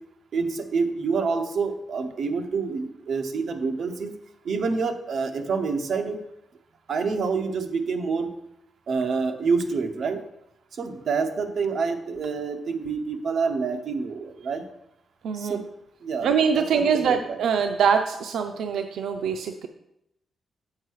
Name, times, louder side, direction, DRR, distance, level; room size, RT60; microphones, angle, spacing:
voice 1, 0.3-4.1 4.4-6.2 6.9-8.3 8.9-10.2 10.8-14.6 15.3-15.6 16.0-16.3 16.5-17.4, right 4 dB, 60° right, 6 dB, 0.9 m, -27 dB
voice 2, 15.2-15.6 16.2-19.7, right 6 dB, 90° right, 6 dB, 0.4 m, -24 dB
7.4 x 5.4 x 4.7 m, 0.81 s
wide cardioid pair, 130°, 0 cm